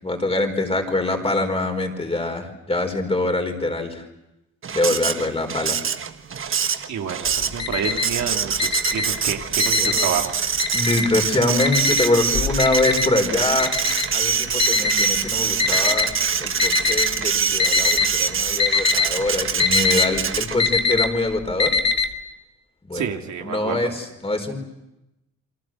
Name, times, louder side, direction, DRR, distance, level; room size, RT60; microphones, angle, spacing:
voice 1, 0.0-4.1 4.7-5.8 9.8-10.1 10.7-13.7 14.1-16.1 16.4-21.8 22.9-23.1 23.4-24.6, left 2 dB, 20° left, 4 dB, 4.8 m, -24 dB
Printer, 4.6-20.8, right 6 dB, 45° right, 1.5 m, -24 dB
voice 2, 6.9-10.3 22.9-23.9, right 8 dB, 70° right, 3 dB, 2.6 m, -28 dB
Alarm, 7.3-8.2 8.6-10.2 10.6-11.2 11.6-16.1 16.6-17.2 17.5-18.1 18.4-22.1, left 4 dB, 60° left, 2.2 m, -22 dB
29.5 x 23.5 x 7.7 m, 0.92 s
cardioid pair, 90°, 30 cm